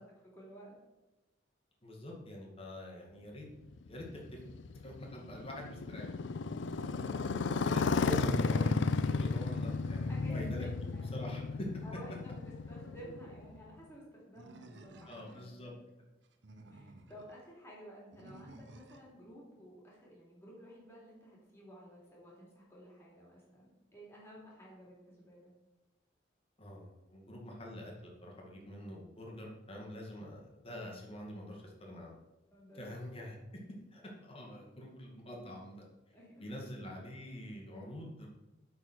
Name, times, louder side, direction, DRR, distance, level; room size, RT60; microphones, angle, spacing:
voice 1, 0.3-0.8 7.1-7.8 10.1-11.1 11.8-15.8 16.7-25.5 32.5-32.8 33.2-33.3 36.1-36.7, equal, 15° left, -5 dB, 3.2 m, -53 dB
voice 2, 1.8-3.5 3.8-4.4 4.8-6.1 7.6-11.8 15.1-15.7 26.6-27.9 28.2-32.2 32.7-33.4 33.9-35.9 36.4-38.3, left 1 dB, 30° left, -1 dB, 2.0 m, -45 dB
Motorcycle, 3.7-13.7, left 4 dB, 65° left, 0.5 m, -34 dB
Animal, 14.4-15.5 16.2-17.3 18.1-19.1, right 1 dB, 65° right, 0.9 m, -54 dB
8.4 x 4.9 x 6.3 m, 1.0 s
head